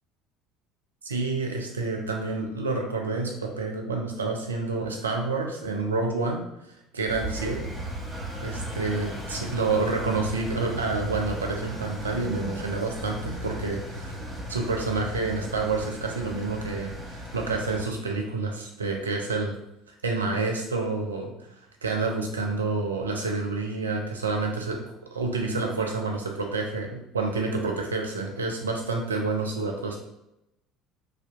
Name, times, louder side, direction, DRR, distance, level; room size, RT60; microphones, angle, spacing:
voice 1, 1.0-6.4 6.9-7.7 8.4-14.1 14.5-19.5 20.0-21.3 21.8-24.8 25.1-30.0, right 3 dB, 85° right, 2 dB, 0.4 m, -28 dB
Engine, 7.1-17.8, equal, 15° right, 1.2 m, -36 dB
2.6 x 2.2 x 2.4 m, 0.86 s
hypercardioid pair, 65°, 0 cm